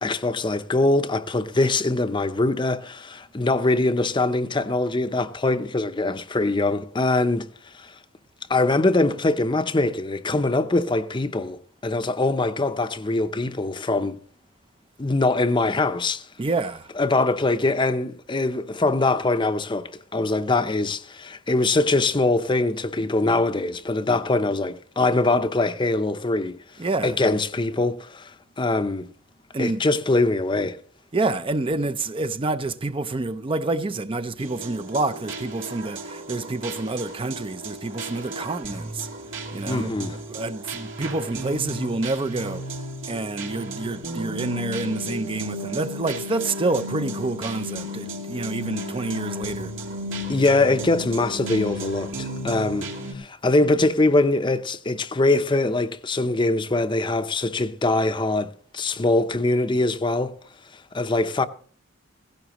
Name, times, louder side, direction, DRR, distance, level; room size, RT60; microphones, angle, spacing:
voice 1, 0.0-7.5 7.8-7.9 8.5-14.2 15.0-16.2 17.0-26.6 27.0-29.1 29.6-30.8 39.7-40.2 50.3-52.9 53.1-60.3 60.9-61.5, left 2 dB, 25° left, 0.7 m, -23 dB
voice 2, 16.4-16.9 26.8-27.2 29.5-29.8 31.1-39.1 39.5-39.9 40.3-42.6 43.1-49.7, right 2 dB, 30° right, 0.5 m, -28 dB
sound 1, 34.4-53.1, equal, 85° right, 2.6 m, -34 dB
16.5 x 16.0 x 3.0 m
head